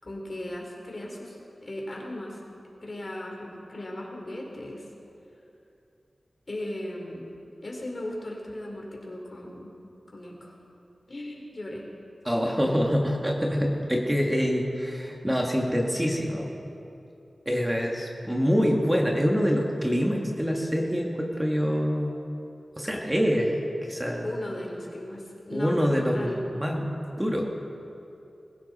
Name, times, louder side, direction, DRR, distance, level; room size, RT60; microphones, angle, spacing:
voice 1, 0.0-2.4 2.8-4.9 6.5-7.3 7.6-9.7 10.1-10.5 11.1-11.9 24.2-26.4, left 1 dB, 45° left, -1 dB, 3.7 m, -37 dB
voice 2, 12.3-16.5 17.5-22.2 22.8-24.3 25.5-27.5, equal, 10° right, -1 dB, 1.8 m, -25 dB
21.5 x 15.5 x 4.2 m, 2.7 s
wide cardioid pair, 75°, 0 cm